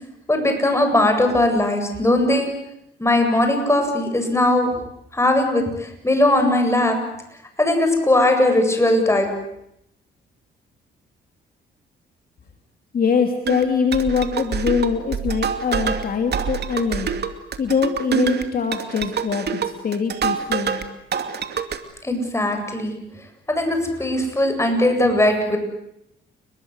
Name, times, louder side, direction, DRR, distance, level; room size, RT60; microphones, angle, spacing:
voice 1, 0.3-2.5 3.0-4.7 5.1-7.0 7.6-9.3 22.0-22.9 23.5-25.6, left 1 dB, 15° left, 5 dB, 7.9 m, -19 dB
voice 2, 12.9-17.1 17.6-19.5 19.8-20.8, left 6 dB, 50° left, 5 dB, 2.9 m, -22 dB
sound 1, 13.4-20.9 21.1-21.8, right 7 dB, 55° right, 2.6 m, -26 dB
30.0 x 21.5 x 8.1 m, 0.80 s
cardioid pair, 90°, 20 cm